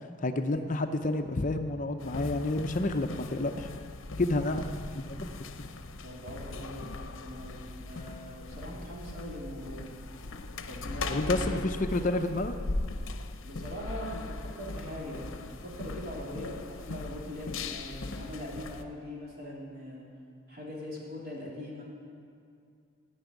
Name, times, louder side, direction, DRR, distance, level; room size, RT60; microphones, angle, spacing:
voice 1, 0.0-3.7 4.2-4.7 4.9-5.3 11.1-12.5, left 2 dB, 40° left, 6 dB, 0.5 m, -30 dB
sound 1, 2.0-18.8, left 2 dB, 75° left, 0.8 m, -39 dB
voice 2, 6.0-9.9 10.7-11.6 13.4-20.0 20.5-21.8, left 1 dB, 50° right, -5 dB, 3.3 m, -41 dB
15.0 x 6.0 x 9.3 m, 2.5 s
head